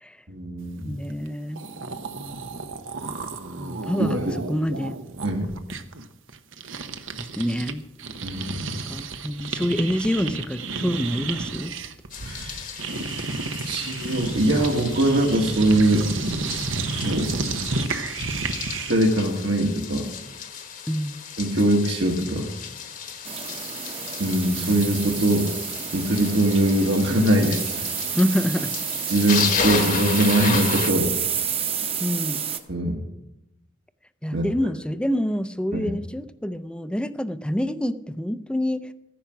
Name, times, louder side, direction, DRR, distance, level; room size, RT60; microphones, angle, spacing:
voice 1, 0.3-0.9 4.0-4.3 5.2-5.4 8.2-8.7 12.2-12.8 13.6-16.1 17.0-17.3 18.9-20.1 21.4-22.5 24.2-25.5 25.9-27.9 29.1-31.1 32.7-33.0 34.3-34.4 35.7-35.9, right 1 dB, 70° right, -2 dB, 1.7 m, -22 dB
voice 2, 0.8-1.6 2.2-2.6 3.6-5.0 7.2-7.8 8.6-11.7 20.9-21.2 28.1-28.7 32.0-32.4 34.2-38.8, equal, 5° left, 12 dB, 0.5 m, -27 dB
sound 1, 1.3-1.4 1.5-7.7 8.0-19.1, right 3 dB, 90° right, 1.0 m, -32 dB
sound 2, 12.1-30.9, left 6 dB, 45° left, 1.2 m, -33 dB
sound 3, 23.2-32.6, right 8 dB, 30° right, 0.9 m, -30 dB
14.5 x 10.0 x 5.9 m, 0.90 s
head